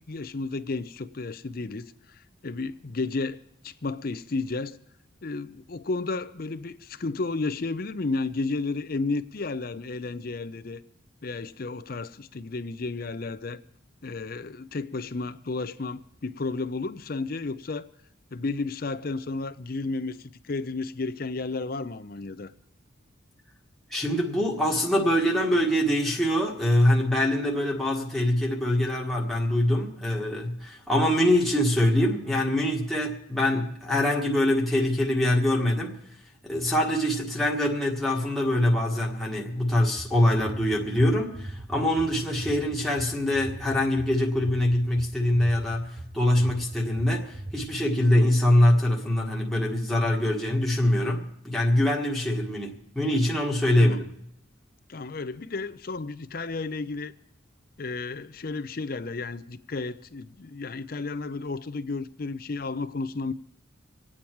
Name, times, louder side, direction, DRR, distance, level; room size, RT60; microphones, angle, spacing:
voice 1, 0.0-4.8 5.2-10.8 11.2-13.6 14.0-17.9 18.3-22.5 53.8-54.0 54.9-57.1 57.8-63.3, left 3 dB, 45° left, 0.6 m, -32 dB
voice 2, 23.9-36.0 36.4-54.1, left 1 dB, ahead, 1.6 m, -24 dB
sound 1, 40.0-47.7, right 1 dB, 85° right, 2.1 m, -40 dB
26.0 x 8.7 x 4.6 m
head